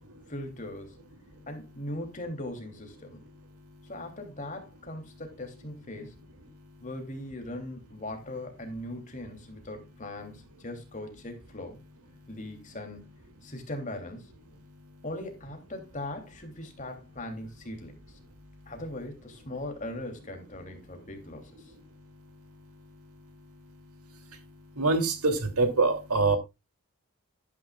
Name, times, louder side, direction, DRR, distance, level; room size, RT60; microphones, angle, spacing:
voice 1, 0.3-1.0 1.5-3.2 3.8-6.2 6.8-11.8 12.3-14.3 15.0-18.2 18.7-21.7, left 1 dB, 35° left, 3.0 m, -40 dB
voice 2, 3.1-3.9 6.5-6.9 12.2-12.3 13.4-13.5 14.6-15.0 18.3-18.7 20.9-21.0 21.7-26.4, right 3 dB, 85° right, 2.8 m, -31 dB
12.5 x 10.5 x 2.4 m
head